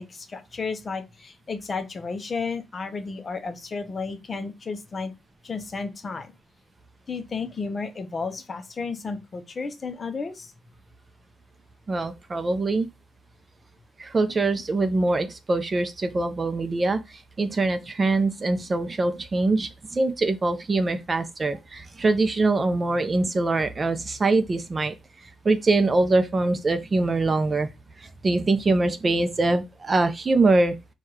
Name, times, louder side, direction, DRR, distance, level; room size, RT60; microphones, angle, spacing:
voice 1, 0.0-5.1 5.4-6.3 7.1-10.5, left 4 dB, 35° left, 0.7 m, -32 dB
voice 2, 11.9-12.9 14.0-24.9 25.4-27.7 28.0-30.7, right 3 dB, 30° right, 0.5 m, -23 dB
4.5 x 2.3 x 4.6 m
cardioid pair, 110°, 0 cm